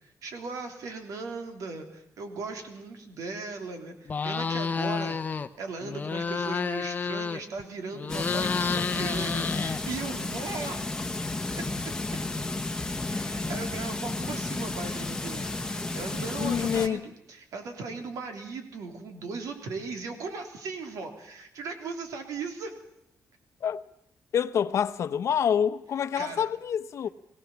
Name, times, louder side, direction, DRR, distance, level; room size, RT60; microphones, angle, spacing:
voice 1, 0.0-10.8 11.5-11.7 12.9-22.7 26.2-26.5, right 4 dB, 80° right, 3.3 m, -38 dB
sound 1, 4.1-5.5 5.8-7.6 7.9-10.2, left 5 dB, 30° left, 0.7 m, -30 dB
sound 2, 8.1-16.9, left 2 dB, 10° left, 1.1 m, -32 dB
voice 2, 16.4-17.0 23.6-23.8 24.3-27.1, left 8 dB, 55° left, 0.9 m, -27 dB
22.0 x 17.0 x 7.3 m
wide cardioid pair, 160°, 6 cm